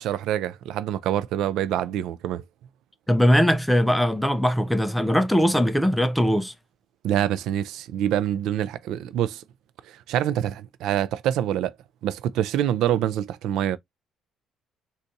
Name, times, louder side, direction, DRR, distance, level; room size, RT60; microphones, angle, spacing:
voice 1, 0.0-2.4 7.0-9.4 9.9-11.7 12.0-13.8, right 11 dB, 75° right, 0.3 m, -26 dB
voice 2, 3.1-6.5, equal, ahead, 0.4 m, -20 dB
3.9 x 2.3 x 2.6 m
cardioid pair, 120°, 0 cm